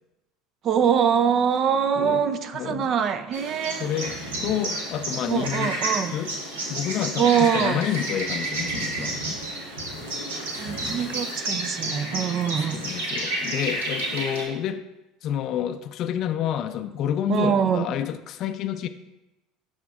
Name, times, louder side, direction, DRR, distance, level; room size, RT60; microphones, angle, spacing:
voice 1, 0.6-3.9 5.3-6.2 7.2-7.8 9.5-9.8 10.6-12.8 17.3-17.9, right 7 dB, 50° right, 12 dB, 0.4 m, -23 dB
voice 2, 2.5-2.9 3.8-4.2 4.4-5.7 6.1-6.3 6.7-9.1 12.6-14.8 15.2-18.9, left 10 dB, 55° left, 8 dB, 0.3 m, -29 dB
sound 1, 3.3-14.5, right 1 dB, 85° right, 1.3 m, -31 dB
12.5 x 4.3 x 2.4 m, 0.98 s
hypercardioid pair, 70°, 0 cm